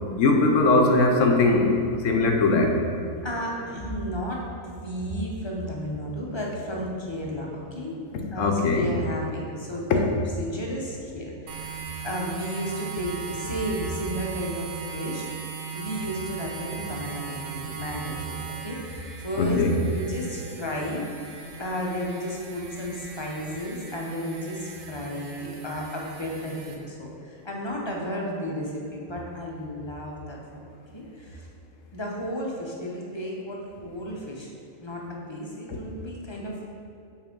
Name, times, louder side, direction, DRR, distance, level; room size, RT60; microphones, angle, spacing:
voice 1, 0.2-2.8 8.4-8.9 9.9-10.0 19.4-19.7, left 3 dB, 65° left, 2 dB, 1.0 m, -20 dB
voice 2, 3.2-8.0 8.3-10.0 10.4-15.3 15.7-21.1 21.6-30.6 30.9-31.5 31.9-34.5 34.8-36.7, equal, 25° left, -2 dB, 0.8 m, -33 dB
sound 1, 11.5-26.8, right 6 dB, 70° right, 1.1 m, -38 dB
5.9 x 4.5 x 5.2 m, 2.5 s
omnidirectional pair, 1.5 m